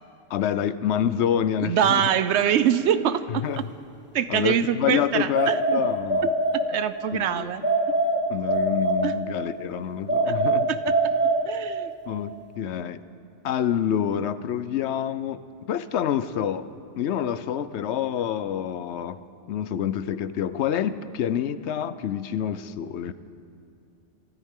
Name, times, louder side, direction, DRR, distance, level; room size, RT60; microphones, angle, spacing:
voice 1, 0.3-2.1 3.3-3.7 4.3-6.3 7.1-7.5 8.3-10.7 12.1-13.0 13.4-15.4 15.7-16.7 17.0-19.2 19.5-23.1, left 9 dB, 75° left, 13 dB, 0.9 m, -27 dB
voice 2, 1.6-3.4 4.1-5.8 6.7-7.7 9.0-9.1 10.3-10.4 11.5-11.9, right 9 dB, 75° right, 13 dB, 0.9 m, -24 dB
sound 1, 5.3-7.1 7.6-9.5 10.1-12.0, right 2 dB, 10° right, 1.0 m, -24 dB
28.0 x 13.5 x 3.7 m, 2.7 s
omnidirectional pair, 1.2 m